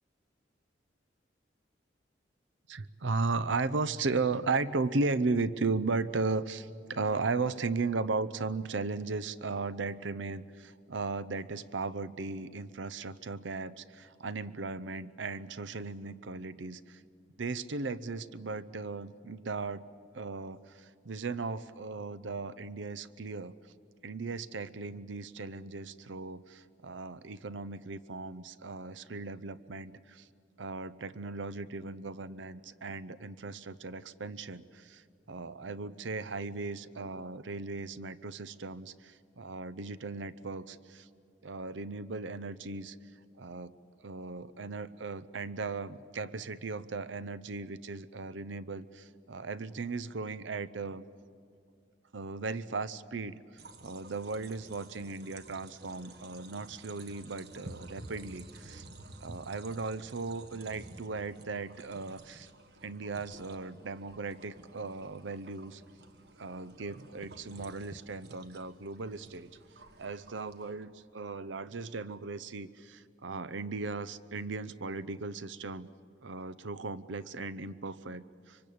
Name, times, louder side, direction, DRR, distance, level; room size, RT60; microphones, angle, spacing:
voice 1, 2.7-17.0 17.4-19.8 20.1-23.5 24.0-30.3 30.6-41.1 41.4-43.0 43.4-43.7 44.0-51.0 52.1-53.4 53.8-58.8 59.2-62.5 62.8-65.8 66.4-69.5 70.0-75.9 76.2-78.6, right 3 dB, 80° right, 15 dB, 0.7 m, -36 dB
sound 1, 53.6-70.7, right 2 dB, 55° right, 1.3 m, -52 dB
25.0 x 23.5 x 8.6 m, 2.3 s
head